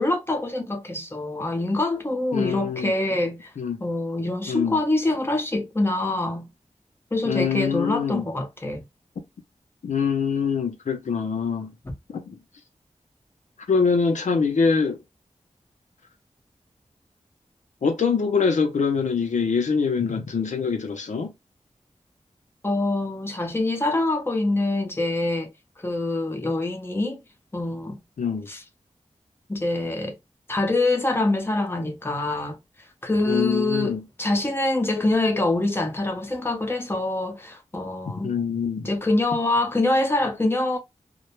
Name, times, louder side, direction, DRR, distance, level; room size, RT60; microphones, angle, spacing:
voice 1, 0.0-3.5 3.8-6.5 7.1-8.8 22.6-25.5 25.8-27.2 27.5-28.0 28.5-28.6 29.5-30.2 30.5-32.6 33.0-38.3 38.8-40.8, left 2 dB, 20° left, 0.6 m, -25 dB
voice 2, 2.3-2.9 3.6-3.8 4.5-4.8 7.3-8.2 9.8-11.7 12.1-12.4 13.7-15.0 17.8-21.3 28.2-28.5 33.3-34.0 38.2-38.9, left 5 dB, 90° left, 0.5 m, -24 dB
2.2 x 2.0 x 2.9 m
wide cardioid pair, 70°, 12 cm